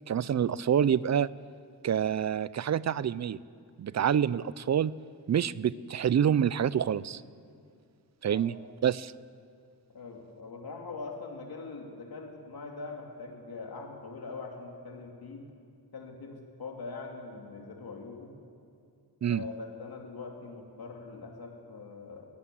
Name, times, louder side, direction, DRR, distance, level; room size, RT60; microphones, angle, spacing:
voice 1, 0.1-1.3 1.8-3.4 3.8-4.9 5.3-7.2 8.2-8.5 8.8-9.1 19.2-19.4, right 9 dB, 45° right, 19 dB, 0.5 m, -27 dB
voice 2, 9.9-15.5 15.9-18.3 19.3-22.3, left 3 dB, 60° left, 1 dB, 2.8 m, -42 dB
22.5 x 17.5 x 7.8 m, 2.4 s
wide cardioid pair, 130°, 40 cm